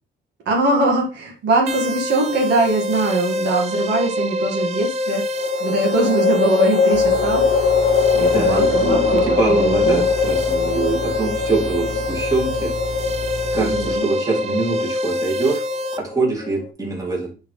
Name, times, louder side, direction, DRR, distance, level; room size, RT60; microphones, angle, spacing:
voice 1, 0.5-5.3 5.6-7.5 8.1-9.2 9.5-10.1 13.6-14.1, right 2 dB, 55° right, 0 dB, 1.9 m, -21 dB
sound 1, 1.7-16.0, left 1 dB, 30° right, 0.6 m, -26 dB
sound 2, 2.3-3.1 5.4-16.7, left 5 dB, 55° left, 0.8 m, -22 dB
sound 3, 6.9-14.0, left 4 dB, 30° left, 0.4 m, -32 dB
voice 2, 8.2-12.7 13.5-15.6 16.0-17.3, right 3 dB, 15° right, -3 dB, 2.3 m, -23 dB
9.2 x 4.4 x 3.3 m, 0.33 s
cardioid pair, 155°, 21 cm